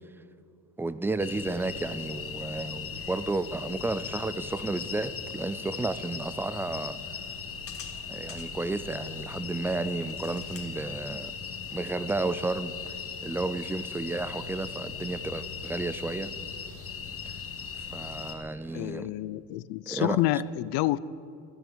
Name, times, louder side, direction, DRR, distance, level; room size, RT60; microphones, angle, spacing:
voice 1, 0.8-7.0 8.1-11.3 11.7-12.9 13.2-16.3 17.3-17.4 17.9-19.1 19.9-20.2, right 3 dB, 5° right, 0.3 m, -32 dB
sound 1, 1.2-18.3, left 6 dB, 35° left, 1.9 m, -38 dB
voice 2, 18.7-21.0, left 15 dB, 75° left, 0.6 m, -28 dB
14.0 x 12.5 x 8.0 m
cardioid pair, 125°, 39 cm